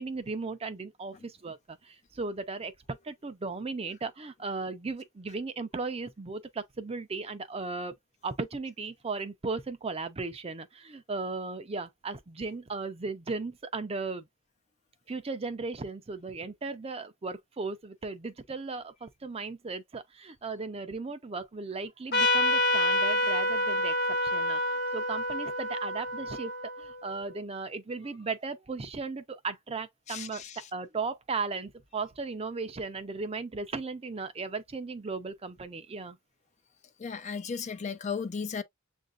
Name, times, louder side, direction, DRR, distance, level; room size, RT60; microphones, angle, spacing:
voice 1, 0.0-7.9 8.2-14.2 15.1-23.9 24.2-24.6 24.9-26.5 26.8-30.4 30.7-36.2, right 4 dB, 30° right, 0.5 m, -36 dB
Trumpet, 22.1-27.2, left 1 dB, 55° left, 1.2 m, -28 dB
voice 2, 30.1-30.7 37.0-38.6, left 5 dB, 35° left, 0.4 m, -35 dB
7.3 x 2.6 x 2.3 m
head